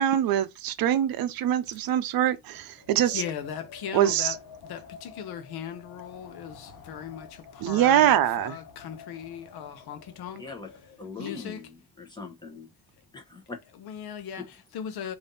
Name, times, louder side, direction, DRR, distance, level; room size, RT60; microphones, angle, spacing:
voice 1, 0.0-3.2 3.9-4.3 7.6-8.6, right 11 dB, 65° right, 0.6 m, -23 dB
Wind, 2.7-11.1, left 5 dB, 55° left, 1.1 m, -49 dB
voice 2, 3.1-10.5 11.2-11.7 13.7-15.2, left 9 dB, 75° left, 0.8 m, -38 dB
voice 3, 11.0-12.7 13.1-13.6 14.4-14.5, left 4 dB, 10° left, 1.0 m, -40 dB
3.4 x 2.7 x 4.0 m
cardioid pair, 155°, 38 cm